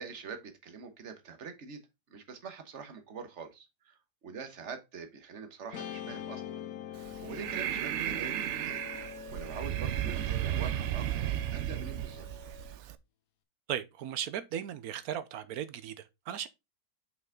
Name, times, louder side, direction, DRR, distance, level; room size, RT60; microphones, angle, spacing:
voice 1, 0.0-1.8 2.1-6.6 6.9-8.8 9.3-11.3 11.5-12.3, right 5 dB, 45° right, 1.3 m, -44 dB
Guitar, 5.7-12.2, left 10 dB, 60° left, 1.1 m, -45 dB
Breathing, 7.0-12.9, right 11 dB, 85° right, 0.6 m, -34 dB
Wind instrument woodwind instrument, 8.1-12.8, left 3 dB, ahead, 1.5 m, -49 dB
voice 2, 13.7-16.5, right 10 dB, 65° right, 1.1 m, -37 dB
5.7 x 5.4 x 3.7 m
omnidirectional pair, 1.9 m